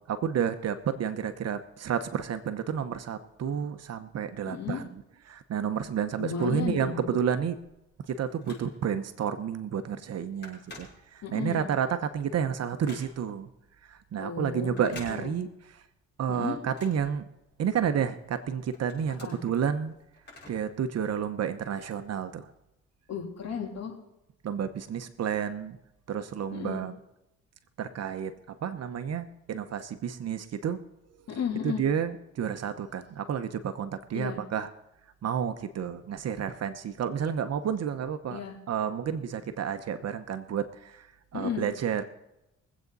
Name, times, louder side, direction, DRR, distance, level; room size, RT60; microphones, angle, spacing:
voice 1, 0.1-5.0 5.3-7.6 8.1-13.5 13.9-15.5 16.2-17.3 17.6-19.9 20.5-22.5 24.4-25.8 26.1-26.9 27.8-28.3 28.6-30.8 31.6-34.7 35.2-38.4 38.7-41.1 41.3-42.0, right 8 dB, 55° right, 9 dB, 1.0 m, -30 dB
voice 2, 4.5-4.8 6.2-7.1 11.2-11.6 14.2-15.3 16.3-16.6 19.2-19.4 23.1-24.0 26.5-26.8 31.3-31.8 34.1-34.4 38.3-38.5 41.3-41.6, left 7 dB, 60° left, 0 dB, 3.2 m, -34 dB
Telephone, 7.7-9.0 9.5-9.7 10.0-11.5 11.9-13.4 14.6-15.7 16.0-17.8 18.3-20.8 21.1-21.2 22.0-22.1, left 2 dB, 35° left, 6.2 m, -50 dB
23.0 x 8.3 x 4.1 m, 0.90 s
cardioid pair, 90°, 30 cm